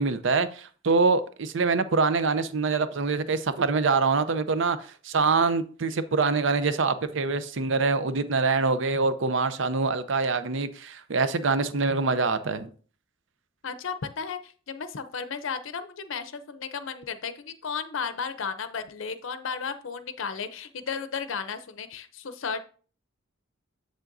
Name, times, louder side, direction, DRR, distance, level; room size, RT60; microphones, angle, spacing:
voice 1, 0.0-4.8 5.0-12.7, right 4 dB, 65° right, 0.6 m, -25 dB
voice 2, 13.6-22.6, left 6 dB, 65° left, 0.6 m, -34 dB
7.6 x 7.3 x 2.6 m
head